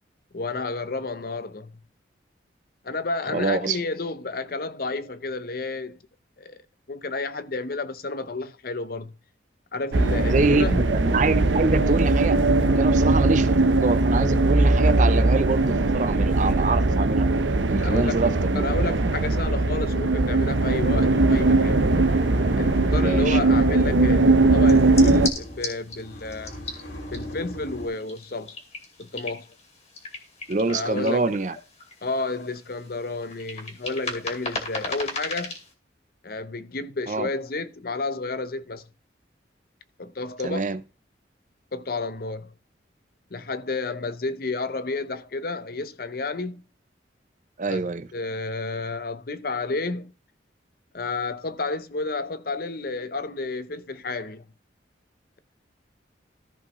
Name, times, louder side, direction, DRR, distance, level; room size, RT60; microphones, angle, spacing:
voice 1, 0.3-1.7 2.8-6.0 6.4-6.6 6.9-9.1 9.7-10.9 17.8-21.8 22.6-26.6 27.1-28.6 29.0-29.5 30.7-31.3 32.0-35.5 36.2-38.8 40.0-40.7 41.7-42.5 43.3-46.6 47.7-47.9 48.1-50.1 50.9-54.4, left 3 dB, 55° left, 0.7 m, -31 dB
voice 2, 3.3-3.8 10.3-12.4 12.7-13.5 13.8-17.3 17.7-18.7 23.0-23.4 30.5-31.5 37.1-37.3 40.4-40.8 47.6-48.1, right 3 dB, 40° right, 0.5 m, -25 dB
sound 1, 9.9-25.3, right 2 dB, 85° right, 0.8 m, -20 dB
sound 2, 20.6-27.9, equal, 80° left, 3.1 m, -39 dB
sound 3, 24.6-35.7, left 3 dB, 35° left, 2.3 m, -37 dB
14.0 x 5.4 x 3.1 m
head